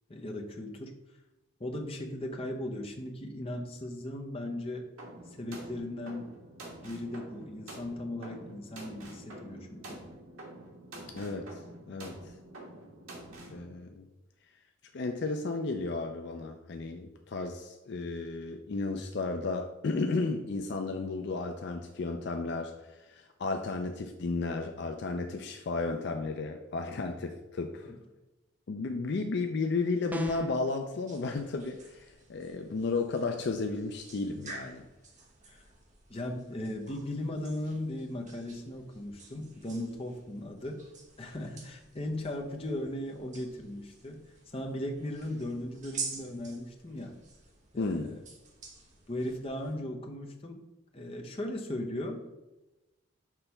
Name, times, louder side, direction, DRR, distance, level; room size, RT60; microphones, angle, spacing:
voice 1, 0.1-0.9 1.6-4.9 5.4-6.3 6.8-10.0 27.8-28.0 35.4-35.6 36.1-40.8 41.2-44.2 44.5-47.2 47.7-48.2 49.1-50.6 50.9-52.2, left 1 dB, 25° left, 2 dB, 0.7 m, -37 dB
sound 1, 5.0-13.6, right 1 dB, 85° right, 1.4 m, -47 dB
voice 2, 11.1-11.6 11.9-12.3 13.5-14.1 14.9-27.9 28.7-34.9 47.8-48.2, left 3 dB, 55° left, 5 dB, 0.4 m, -33 dB
sound 2, 30.1-30.7, equal, 10° right, 0.4 m, -35 dB
sound 3, 31.1-49.7, right 4 dB, 35° right, 1.0 m, -48 dB
6.0 x 3.3 x 5.6 m, 1.0 s
head